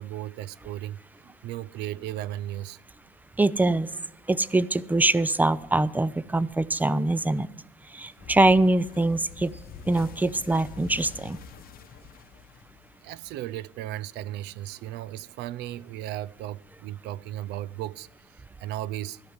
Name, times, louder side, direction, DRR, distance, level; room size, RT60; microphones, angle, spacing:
voice 1, 0.0-2.8 13.0-19.2, right 13 dB, 80° right, 0.4 m, -36 dB
voice 2, 3.4-3.9 4.3-7.5 7.9-9.5 9.9-11.4, right 2 dB, 10° right, 0.4 m, -23 dB
sound 1, 8.2-13.3, left 7 dB, 60° left, 0.8 m, -46 dB
13.5 x 5.7 x 9.5 m
cardioid pair, 110°, 17 cm